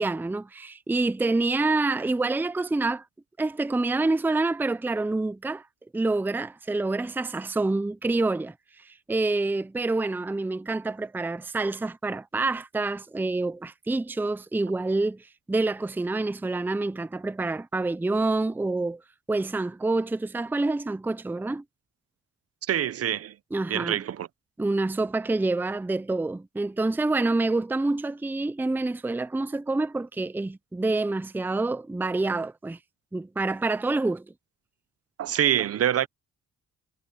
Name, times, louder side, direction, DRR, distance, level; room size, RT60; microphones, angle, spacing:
voice 1, 0.0-3.0 3.4-5.7 5.9-19.0 19.3-21.6 23.5-24.0 24.6-32.8 33.1-34.3, right 2 dB, 5° right, 0.5 m, -27 dB
voice 2, 22.7-23.3 23.7-24.3 35.2-36.1, right 10 dB, 50° right, 0.7 m, -25 dB
cardioid pair, 90°, 30 cm